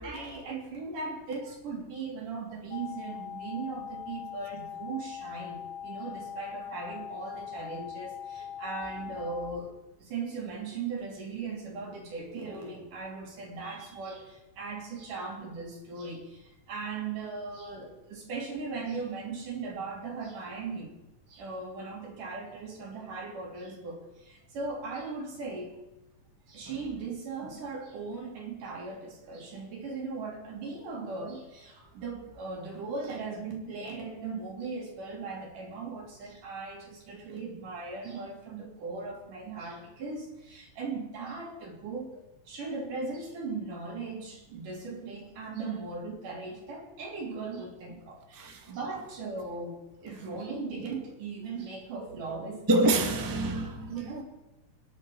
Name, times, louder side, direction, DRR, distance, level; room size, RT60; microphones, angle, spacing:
voice 1, 0.0-9.7 10.0-20.9 21.3-25.8 26.5-42.1 42.5-52.9 53.9-54.2, right 4 dB, 70° right, 4.6 m, -38 dB
sound 1, 2.7-9.5, left 9 dB, 70° left, 2.2 m, -41 dB
voice 2, 48.3-48.7 52.0-52.1 52.7-53.9, right 1 dB, 15° right, 0.6 m, -27 dB
26.0 x 10.5 x 4.6 m
omnidirectional pair, 3.8 m